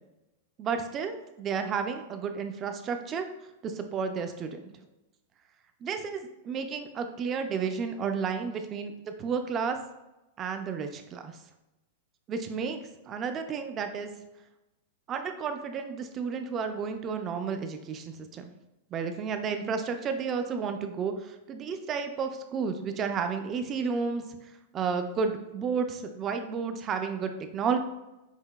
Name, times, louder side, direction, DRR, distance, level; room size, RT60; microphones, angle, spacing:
voice 1, 0.6-3.3 3.6-4.6 5.8-8.9 9.2-9.8 10.4-11.4 12.3-12.8 13.1-14.1 15.1-18.5 18.9-24.2 24.7-27.8, right 5 dB, 25° right, 7 dB, 0.3 m, -32 dB
5.6 x 2.6 x 2.3 m, 0.96 s
supercardioid pair, 160°, 0 cm